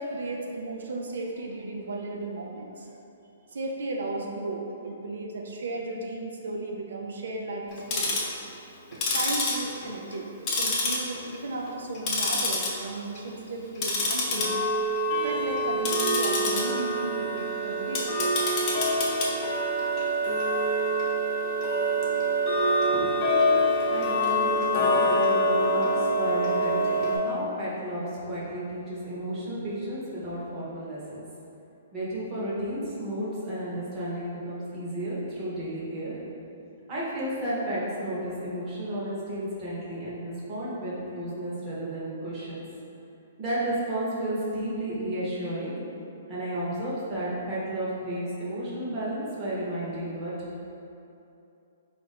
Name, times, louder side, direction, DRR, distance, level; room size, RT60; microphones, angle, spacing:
voice 1, 0.0-2.9 3.5-8.4 8.9-14.5 15.2-18.6, right 2 dB, 75° right, 0 dB, 0.4 m, -35 dB
Tick-tock, 7.7-8.3 8.9-10.2 10.5-11.3 11.7-12.7 13.1-13.3 13.7-27.2, equal, 20° left, 0.5 m, -25 dB
voice 2, 22.9-23.4 23.9-31.2 31.9-36.2 36.9-42.6 43.4-45.7 46.3-50.3, right 1 dB, 15° right, -9 dB, 0.8 m, -33 dB
4.2 x 2.5 x 4.1 m, 2.8 s
hypercardioid pair, 180°, 0 cm